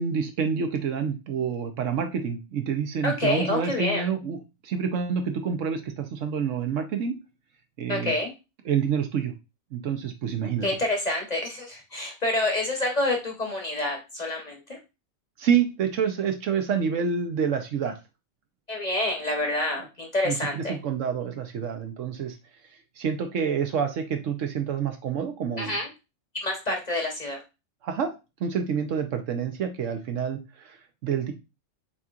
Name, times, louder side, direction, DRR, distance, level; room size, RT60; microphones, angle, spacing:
voice 1, 0.0-7.2 7.8-8.1 8.6-9.3 9.7-10.7 15.4-18.0 20.2-22.4 23.0-25.8 27.8-28.1 28.4-31.3, right 7 dB, 70° right, 6 dB, 1.1 m, -28 dB
voice 2, 3.0-4.1 7.9-8.3 10.6-14.8 18.7-20.7 25.6-25.9 26.4-27.4, left 2 dB, 35° left, 1 dB, 1.0 m, -27 dB
7.0 x 2.8 x 2.4 m, 0.27 s
omnidirectional pair, 1.4 m